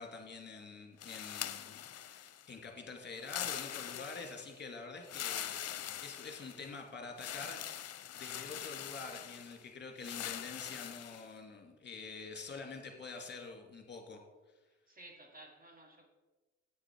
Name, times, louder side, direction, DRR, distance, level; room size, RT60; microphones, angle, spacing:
voice 1, 0.0-14.2, left 4 dB, 35° left, 3 dB, 2.1 m, -47 dB
sound 1, 1.0-2.5 3.2-4.5 5.0-6.7 7.2-9.6 10.0-11.3, left 11 dB, 55° left, 0.7 m, -43 dB
voice 2, 14.9-16.1, right 1 dB, 30° right, 4 dB, 1.6 m, -55 dB
9.6 x 8.2 x 4.5 m, 1.2 s
cardioid pair, 90°, 30 cm